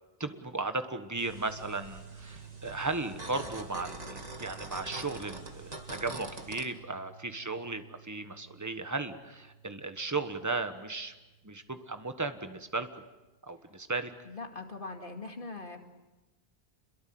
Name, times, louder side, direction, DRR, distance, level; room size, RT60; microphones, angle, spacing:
voice 1, 0.2-11.1 11.4-12.9 13.4-14.1, right 3 dB, 15° right, 8 dB, 1.4 m, -36 dB
sound 1, 1.1-13.0, right 8 dB, 85° right, 1.7 m, -53 dB
sound 2, 1.2-6.6, right 2 dB, 40° right, 2.2 m, -44 dB
voice 2, 14.3-15.8, left 3 dB, 55° left, 4 dB, 2.5 m, -41 dB
28.0 x 22.5 x 7.8 m, 1.1 s
omnidirectional pair, 1.1 m